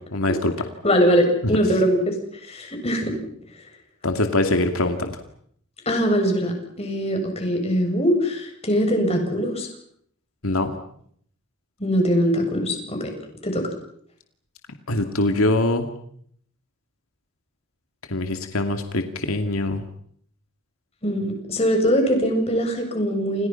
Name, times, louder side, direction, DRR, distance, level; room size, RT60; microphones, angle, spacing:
voice 1, 0.1-0.5 4.0-5.2 10.4-10.7 14.9-15.9 18.1-19.8, left 2 dB, 85° left, 6 dB, 2.4 m, -23 dB
voice 2, 0.8-3.2 5.9-9.7 11.8-13.1 13.4-13.7 21.0-23.5, equal, 30° left, 3 dB, 7.9 m, -22 dB
29.5 x 28.5 x 5.9 m, 0.66 s
head